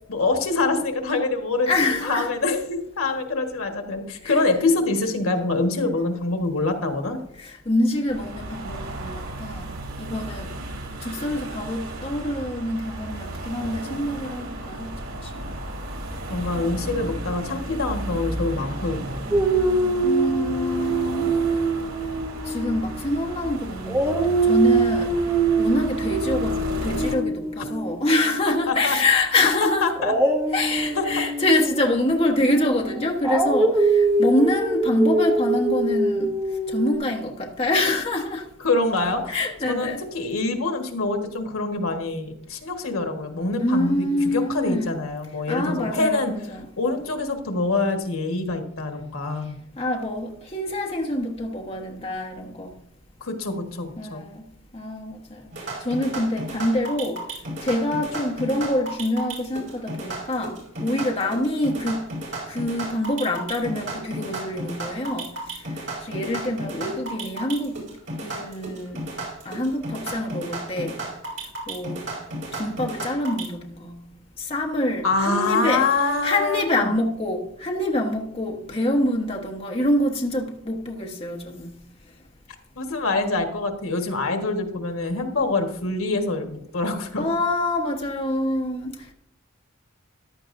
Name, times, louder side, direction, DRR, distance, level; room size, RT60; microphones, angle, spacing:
voice 1, 0.1-7.2 16.3-19.3 28.7-29.0 29.8-30.1 30.9-31.2 38.6-39.4 39.7-44.1 44.3-46.3 46.8-49.5 53.2-54.2 75.0-76.9 82.8-87.3, left 3 dB, 80° left, 1.5 m, -25 dB
voice 2, 1.7-2.3 4.2-4.4 7.4-9.7 10.0-10.5 11.0-15.5 16.6-17.2 20.0-21.3 22.4-25.1 25.6-29.9 30.5-36.3 36.7-38.5 39.3-40.0 43.6-45.0 45.5-46.7 49.8-52.7 54.0-54.5 54.7-55.5 55.8-57.2 57.6-62.0 62.5-65.3 66.0-67.8 68.2-69.0 69.4-71.0 71.7-72.0 72.5-74.0 74.4-75.8 76.2-81.8 87.2-89.1, left 1 dB, 30° left, 1.1 m, -25 dB
sound 1, 8.1-27.2, right 1 dB, 85° right, 3.0 m, -34 dB
Dog, 19.3-23.5 23.9-28.9 30.0-36.9, right 3 dB, 10° right, 1.1 m, -24 dB
sound 2, 55.5-73.5, right 1 dB, 60° right, 4.9 m, -33 dB
14.5 x 11.5 x 2.6 m
head